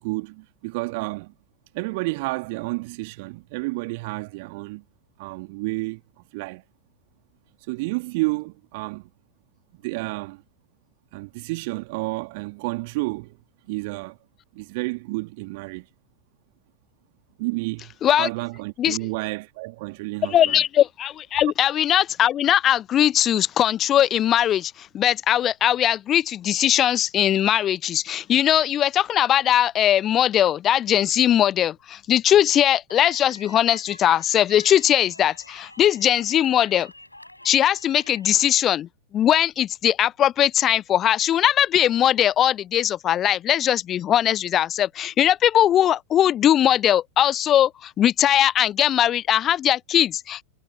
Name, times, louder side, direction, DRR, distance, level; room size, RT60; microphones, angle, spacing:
voice 1, 0.0-1.3 1.7-4.8 5.2-6.0 6.3-6.6 7.7-9.1 9.8-10.4 11.1-13.4 13.7-14.2 14.5-15.9 17.4-20.6, right 25 dB, 50° right, 2.2 m, -30 dB
voice 2, 20.3-36.9 37.4-38.9 39.1-50.4, left 11 dB, 30° left, 0.8 m, -20 dB
Cheering, 32.9-38.4, left 1 dB, 85° left, 7.4 m, -47 dB
figure-of-eight pair, 90°, 0 cm